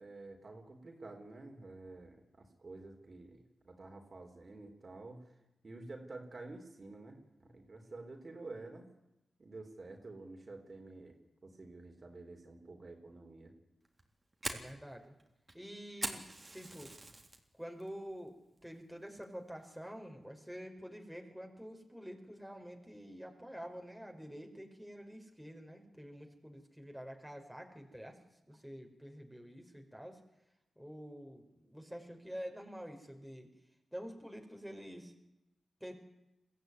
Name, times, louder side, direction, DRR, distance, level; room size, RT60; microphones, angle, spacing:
voice 1, 0.0-5.3 5.6-8.9 9.4-11.1 11.4-13.5, right 2 dB, 50° right, 3 dB, 4.1 m, -50 dB
Fire, 13.8-17.4 17.8-18.2 18.6-18.7 19.2-19.6, right 2 dB, 35° right, 3.5 m, -42 dB
voice 2, 14.5-15.2 15.5-16.2 16.5-16.9 17.5-18.4 18.6-28.2 28.5-30.2 30.7-33.5 33.9-35.1 35.8-35.9, equal, ahead, 3 dB, 4.9 m, -48 dB
22.0 x 15.0 x 9.7 m, 0.92 s
supercardioid pair, 45°, 0 cm